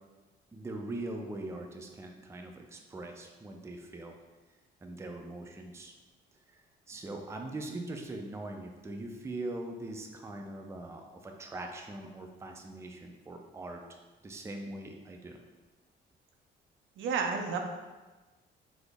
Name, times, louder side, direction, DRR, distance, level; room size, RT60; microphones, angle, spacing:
voice 1, 0.5-4.1 4.8-5.9 6.5-13.8 14.2-15.4, right 2 dB, 15° right, 3 dB, 0.4 m, -41 dB
voice 2, 17.0-17.6, right 5 dB, 75° right, 3 dB, 0.5 m, -31 dB
4.0 x 2.0 x 3.4 m, 1.2 s
cardioid pair, 90°, 20 cm